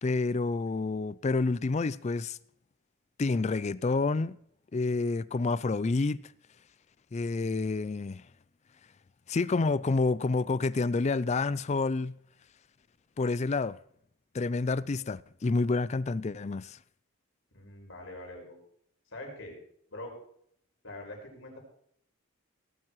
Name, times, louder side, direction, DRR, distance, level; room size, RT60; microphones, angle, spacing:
voice 1, 0.0-2.4 3.2-4.3 4.7-6.2 7.1-8.2 9.3-12.1 13.2-13.8 14.3-16.8, left 3 dB, 30° left, 0.4 m, -28 dB
voice 2, 17.5-18.6 19.1-19.5 19.9-20.1 20.8-21.6, left 1 dB, 60° left, 5.4 m, -43 dB
18.0 x 12.0 x 3.1 m
head